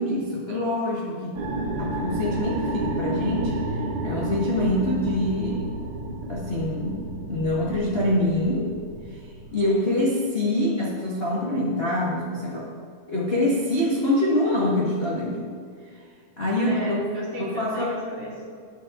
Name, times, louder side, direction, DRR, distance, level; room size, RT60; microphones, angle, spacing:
voice 1, 0.0-1.4 1.8-3.5 4.0-5.6 6.3-8.7 9.1-9.2 9.5-12.7 13.1-15.5 16.4-17.0 17.4-17.9, left 1 dB, 30° left, -6 dB, 1.1 m, -25 dB
sound 1, 1.4-9.6, right 1 dB, 70° right, 1.3 m, -31 dB
voice 2, 16.6-18.5, equal, 40° right, -5 dB, 3.5 m, -34 dB
20.5 x 8.4 x 3.9 m, 2.2 s
omnidirectional pair, 4.4 m